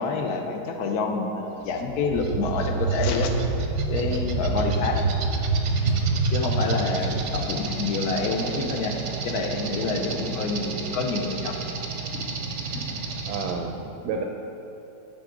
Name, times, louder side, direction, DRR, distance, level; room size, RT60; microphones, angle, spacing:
voice 1, 0.0-3.3 3.9-5.1 5.7-6.0 6.3-9.0 9.2-11.6 12.1-12.3 12.7-13.0, left 4 dB, 70° left, 3 dB, 1.2 m, -28 dB
sound 1, 1.7-13.5, right 4 dB, 60° right, 0.9 m, -28 dB
voice 2, 13.3-14.2, right 5 dB, 75° right, 3 dB, 1.1 m, -31 dB
10.5 x 3.9 x 5.0 m, 3.0 s
omnidirectional pair, 1.8 m